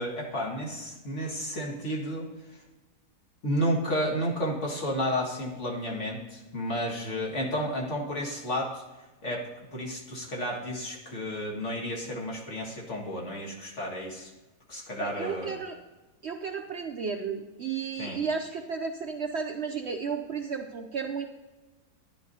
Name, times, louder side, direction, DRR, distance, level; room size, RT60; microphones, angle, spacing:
voice 1, 0.0-2.6 3.4-8.8 9.2-14.3 14.7-15.6 18.0-18.2, equal, 50° left, -2 dB, 2.1 m, -32 dB
voice 2, 15.0-15.7 16.2-21.2, right 5 dB, 60° right, 4 dB, 0.8 m, -33 dB
12.5 x 10.5 x 2.8 m, 1.2 s
omnidirectional pair, 1.6 m